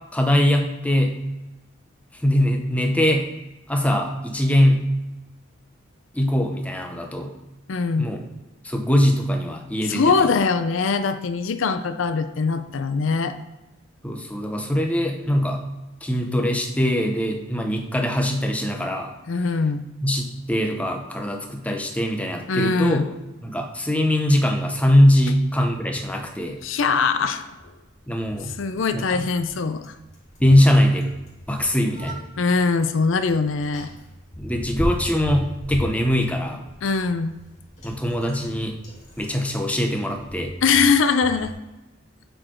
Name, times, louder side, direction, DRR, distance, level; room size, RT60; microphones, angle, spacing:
voice 1, 0.1-1.2 2.1-3.3 3.7-4.8 6.1-7.3 8.0-8.3 8.6-10.3 14.0-15.6 16.0-19.1 20.0-23.0 23.4-26.6 28.1-28.5 28.9-29.2 30.4-31.1 31.5-32.2 34.4-36.6 37.8-38.8 39.2-40.5, left 1 dB, 5° left, 3 dB, 0.7 m, -21 dB
voice 2, 7.7-8.1 9.8-13.3 19.3-19.8 22.5-23.0 26.6-27.5 28.5-29.9 32.4-33.9 36.8-37.4 40.6-41.6, left 4 dB, 70° left, 10 dB, 0.5 m, -22 dB
Bicycle, 26.2-41.5, equal, 35° left, 2.3 m, -37 dB
7.6 x 4.4 x 4.4 m, 1.0 s
head